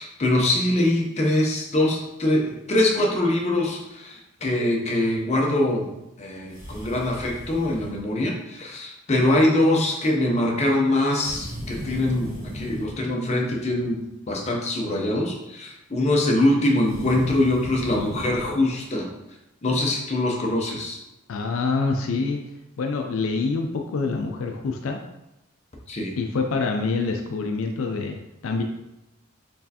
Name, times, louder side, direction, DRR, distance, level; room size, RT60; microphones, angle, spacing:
voice 1, 0.0-5.9 6.2-14.0 14.3-19.1 19.6-21.0 25.9-26.1, left 1 dB, 30° left, 0 dB, 0.6 m, -23 dB
sound 1, 6.5-8.0 11.2-13.0 16.8-18.5, equal, 20° right, 1.5 m, -36 dB
voice 2, 21.3-22.4 22.8-25.0 26.2-28.6, left 4 dB, 70° left, 3 dB, 0.4 m, -26 dB
4.4 x 3.2 x 2.8 m, 0.91 s
head